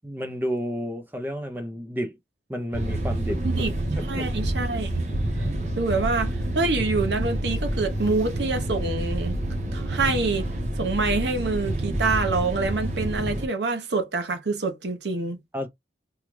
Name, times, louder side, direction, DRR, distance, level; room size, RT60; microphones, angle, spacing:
voice 1, 0.0-2.2 2.5-3.7 4.2-4.3 15.5-15.7, equal, 10° right, 0.5 m, -31 dB
sound 1, 2.7-13.5, right 1 dB, 40° right, 0.8 m, -28 dB
voice 2, 3.4-3.7 4.1-5.0 5.8-9.4 9.7-10.5 10.8-15.4, right 3 dB, 80° right, 0.8 m, -26 dB
3.6 x 2.3 x 3.0 m
head